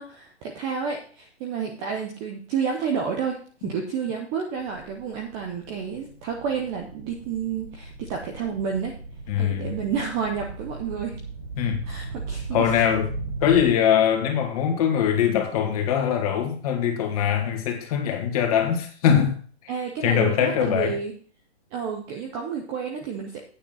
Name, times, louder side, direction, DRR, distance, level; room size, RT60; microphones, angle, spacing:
voice 1, 0.0-8.9 9.4-11.2 11.9-12.7 19.7-21.1 21.7-23.4, right 6 dB, 10° right, 0.5 m, -30 dB
sound 1, 4.6-13.7, right 3 dB, 75° right, 5.0 m, -37 dB
voice 2, 9.3-9.8 11.6-11.9 12.5-13.1 13.4-19.4 19.6-19.7 20.0-21.0, left 9 dB, 35° left, 2.1 m, -22 dB
8.9 x 7.0 x 5.4 m
hypercardioid pair, 160°, 33 cm